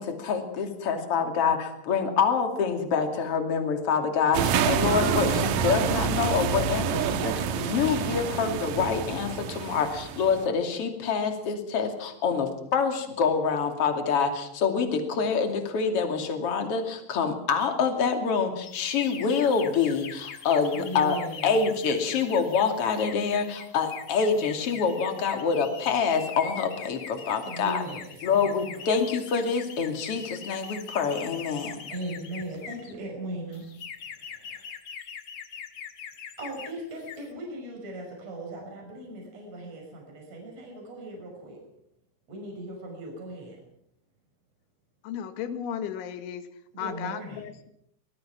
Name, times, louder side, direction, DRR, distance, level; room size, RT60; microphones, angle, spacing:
voice 1, 0.0-27.8 28.2-31.8, left 5 dB, 35° left, 5 dB, 3.0 m, -26 dB
sound 1, 4.3-10.5, right 7 dB, 75° right, 2.0 m, -27 dB
sound 2, 18.6-32.9 33.5-36.7 37.0-37.3, left 7 dB, 60° left, 1.5 m, -42 dB
voice 2, 20.7-21.7 27.4-29.1 31.9-33.7 34.1-34.4 36.4-41.6 42.3-43.6 46.7-47.5, right 1 dB, 35° right, 0 dB, 6.4 m, -38 dB
voice 3, 45.0-46.4 46.8-47.7, left 9 dB, 85° left, 9 dB, 4.0 m, -35 dB
24.5 x 20.0 x 5.9 m, 0.75 s
omnidirectional pair, 5.3 m